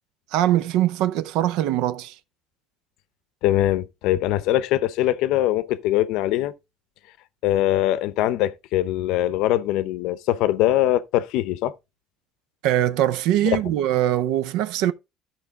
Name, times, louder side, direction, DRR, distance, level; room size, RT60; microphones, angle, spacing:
voice 1, 0.3-2.1 12.6-14.9, right 12 dB, 80° right, 0.6 m, -22 dB
voice 2, 3.4-6.5 7.4-11.7 13.4-13.6, left 14 dB, 70° left, 0.6 m, -22 dB
13.5 x 4.5 x 3.5 m
cardioid pair, 165°, 0 cm